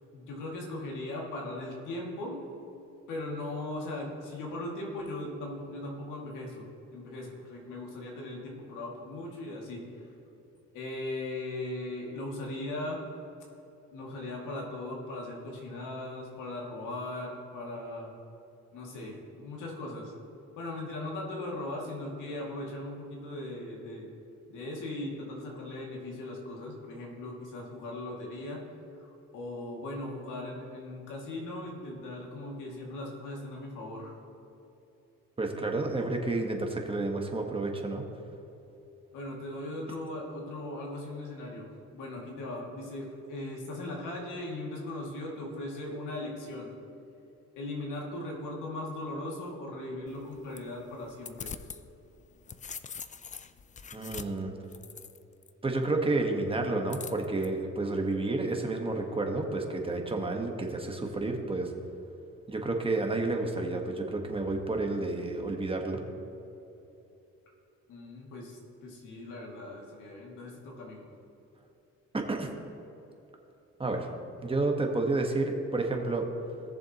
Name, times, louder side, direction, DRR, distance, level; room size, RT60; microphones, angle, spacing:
voice 1, 0.1-2.4 3.1-6.7 6.9-9.8 10.7-13.0 13.9-18.1 18.7-20.1 20.6-24.1 24.5-28.6 29.0-34.1 39.1-41.7 41.9-46.7 47.6-51.5 67.9-71.1, left 1 dB, 85° left, -2 dB, 2.4 m, -38 dB
voice 2, 35.4-38.0 53.9-54.5 55.6-61.7 62.5-66.0 72.1-72.5 73.8-74.1 74.4-76.2, right 2 dB, 20° right, 2 dB, 1.4 m, -30 dB
sound 1, 50.1-51.8 52.2-55.5 56.9-57.5, left 6 dB, 25° left, 0.4 m, -43 dB
17.5 x 7.1 x 3.0 m, 2.9 s
cardioid pair, 90°, 30 cm